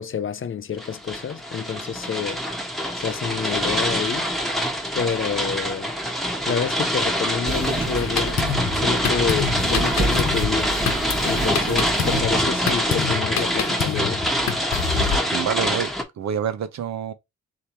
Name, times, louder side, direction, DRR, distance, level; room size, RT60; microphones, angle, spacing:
voice 1, 0.0-2.4 3.0-4.3 4.9-5.9 6.5-8.4 8.7-10.7 11.2-14.2, left 7 dB, 45° left, 0.5 m, -28 dB
sound 1, 0.8-16.0, equal, ahead, 1.1 m, -25 dB
sound 2, 7.5-12.5, right 2 dB, 30° right, 1.0 m, -29 dB
Drum kit, 7.9-15.2, left 7 dB, 65° left, 1.0 m, -27 dB
voice 2, 14.9-17.1, right 8 dB, 70° right, 0.8 m, -28 dB
3.4 x 2.9 x 4.2 m
cardioid pair, 60°, 29 cm